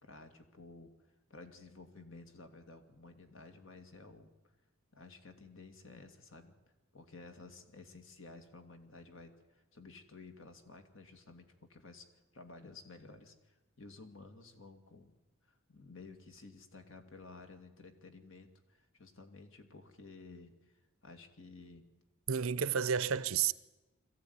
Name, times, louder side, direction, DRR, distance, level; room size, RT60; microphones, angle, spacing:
voice 1, 0.0-0.9 1.3-4.3 4.9-6.6 6.9-12.1 12.3-15.1 15.4-20.8 21.0-21.9, left 3 dB, 65° left, 2.3 m, -54 dB
voice 2, 22.3-23.5, right 7 dB, 80° right, 0.7 m, -31 dB
22.5 x 14.5 x 9.6 m
head